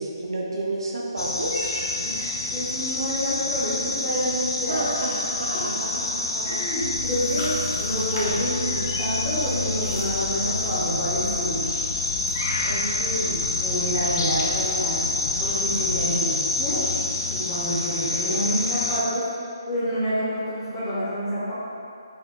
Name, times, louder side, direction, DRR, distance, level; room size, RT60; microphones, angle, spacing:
voice 1, 0.0-1.7 4.7-6.6 12.6-13.4 16.0-16.4, right 1 dB, 70° right, -3 dB, 0.7 m, -31 dB
sound 1, 1.2-19.0, left 2 dB, 60° left, 0.4 m, -27 dB
voice 2, 2.0-4.9 5.5-5.7 6.4-11.7 13.6-15.0 15.4-16.2 16.6-16.8 17.3-19.3 19.6-21.5, equal, 15° left, -14 dB, 0.6 m, -28 dB
sound 2, 6.8-16.0, left 2 dB, 80° left, 0.9 m, -34 dB
3.5 x 2.1 x 3.7 m, 2.6 s
hypercardioid pair, 160°, 3 cm